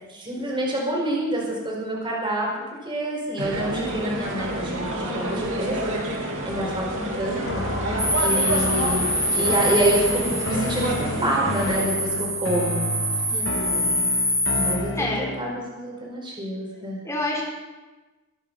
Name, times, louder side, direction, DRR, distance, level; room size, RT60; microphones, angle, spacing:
voice 1, 0.1-2.5 2.8-6.0 6.4-7.6 8.2-9.1 9.3-12.9 13.6-14.0 14.5-17.0, right 1 dB, 20° right, -3 dB, 5.0 m, -27 dB
sound 1, 3.4-11.9, right 1 dB, 60° right, 3.1 m, -29 dB
sound 2, 7.4-15.5, left 1 dB, 55° left, 1.7 m, -32 dB
sound 3, 8.0-14.8, equal, 5° right, 1.7 m, -25 dB
voice 2, 13.3-13.9 14.9-15.3 17.0-17.5, left 2 dB, 15° left, -3 dB, 4.9 m, -29 dB
23.5 x 11.0 x 5.6 m, 1.2 s
head